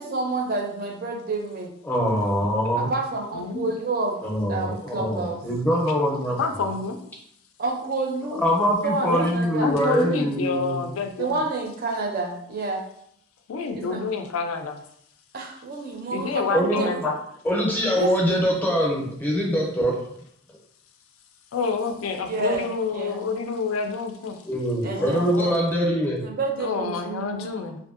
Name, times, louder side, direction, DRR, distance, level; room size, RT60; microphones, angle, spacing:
voice 1, 0.0-1.7 2.7-4.2 4.5-5.4 7.6-8.4 8.8-9.7 11.2-12.8 13.7-14.1 15.3-17.0 17.9-18.5 22.3-22.7 22.9-23.2 24.8-25.2 26.2-27.7, right 3 dB, 45° right, 2 dB, 0.4 m, -29 dB
voice 2, 1.8-2.9 4.2-6.4 8.3-10.9 16.5-17.1 17.4-20.0 24.4-26.2, equal, 10° left, -2 dB, 0.5 m, -23 dB
voice 3, 3.3-3.7 6.4-7.0 9.1-9.2 9.6-11.4 13.5-14.8 16.1-17.2 21.5-24.4 25.0-25.6 26.6-27.8, left 4 dB, 80° left, 6 dB, 0.4 m, -28 dB
2.6 x 2.5 x 2.4 m, 0.71 s
head